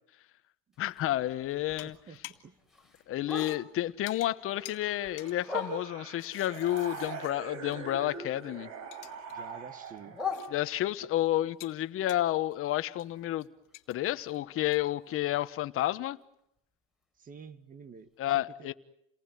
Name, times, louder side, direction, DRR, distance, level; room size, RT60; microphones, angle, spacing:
Bark, 0.7-3.9 4.3-6.2 6.7-8.5 8.8-11.1 11.6-15.5 15.8-15.9 16.2-16.6 17.0-17.1 17.5-17.6 18.1-18.2, left 4 dB, ahead, 5.1 m, -43 dB
voice 1, 0.8-2.0 3.1-8.7 10.5-13.5 13.9-16.2 18.2-18.7, left 14 dB, 40° left, 1.3 m, -30 dB
sound 1, 1.8-2.6 2.8-8.0 8.3-8.4 8.7-9.4 9.6-10.8 11.1-15.0, left 18 dB, 85° left, 2.0 m, -52 dB
voice 2, 1.8-2.6 9.3-10.2 11.0-11.1 17.2-18.7, right 5 dB, 25° right, 1.8 m, -49 dB
sound 2, 4.5-10.3, right 5 dB, 50° right, 5.3 m, -43 dB
29.5 x 19.5 x 9.4 m
supercardioid pair, 140°, 34 cm